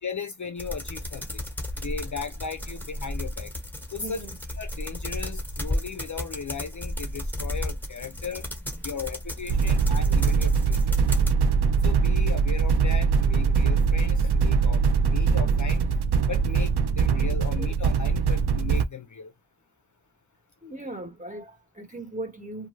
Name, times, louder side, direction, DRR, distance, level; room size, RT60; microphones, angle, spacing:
voice 1, 0.0-1.4 1.8-3.5 3.9-4.3 4.6-8.4 8.8-11.0 11.8-15.8 16.3-19.3, left 6 dB, 50° left, 0.5 m, -36 dB
sound 1, 0.6-11.3, left 1 dB, 5° left, 1.2 m, -34 dB
voice 2, 3.9-4.4 8.0-10.1 17.6-17.7 20.6-22.7, right 2 dB, 20° right, 1.3 m, -41 dB
sound 2, 9.5-18.9, right 5 dB, 80° right, 0.5 m, -22 dB
2.6 x 2.3 x 3.1 m
wide cardioid pair, 65°, 39 cm